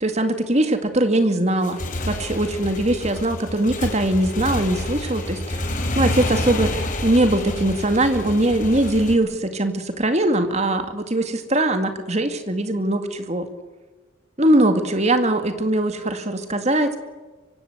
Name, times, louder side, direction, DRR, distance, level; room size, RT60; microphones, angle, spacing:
voice 1, 0.0-5.6 6.0-13.5 14.4-17.0, right 1 dB, 35° right, 8 dB, 2.2 m, -21 dB
Motorcycle / Engine, 1.5-9.1, left 1 dB, 40° left, 3.6 m, -28 dB
25.0 x 24.0 x 8.0 m, 1.3 s
head